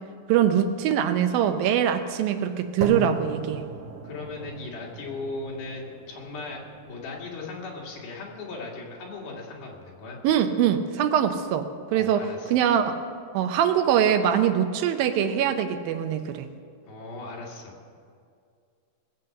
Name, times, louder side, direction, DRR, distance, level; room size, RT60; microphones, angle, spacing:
voice 1, 0.3-3.6 10.2-13.0 13.3-16.5, right 9 dB, 80° right, 7 dB, 2.6 m, -23 dB
sound 1, 2.8-10.8, right 3 dB, 60° right, 2.2 m, -39 dB
voice 2, 4.0-10.2 11.9-12.6 16.9-17.7, left 3 dB, 85° left, -2 dB, 4.1 m, -38 dB
20.0 x 7.8 x 6.6 m, 2.3 s
omnidirectional pair, 4.1 m